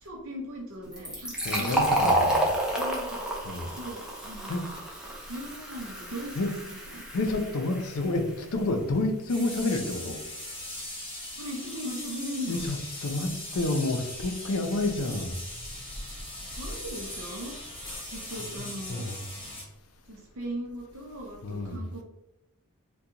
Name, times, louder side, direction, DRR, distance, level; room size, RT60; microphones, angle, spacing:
voice 1, 0.0-2.0 2.8-3.2 3.7-4.6 5.3-7.2 11.4-12.6 16.6-17.5 18.1-19.0 20.1-22.0, equal, 65° right, 0.7 m, -39 dB
Fill (with liquid), 0.9-8.3, right 1 dB, 5° right, 0.6 m, -30 dB
voice 2, 1.4-2.5 3.4-3.7 4.5-4.7 6.4-6.5 7.1-10.2 12.5-15.3 17.9-18.0 18.3-19.2 21.4-21.8, left 2 dB, 70° left, 0.5 m, -29 dB
sound 1, 9.3-19.6, left 1 dB, 25° left, 1.2 m, -39 dB
2.8 x 2.3 x 3.6 m
head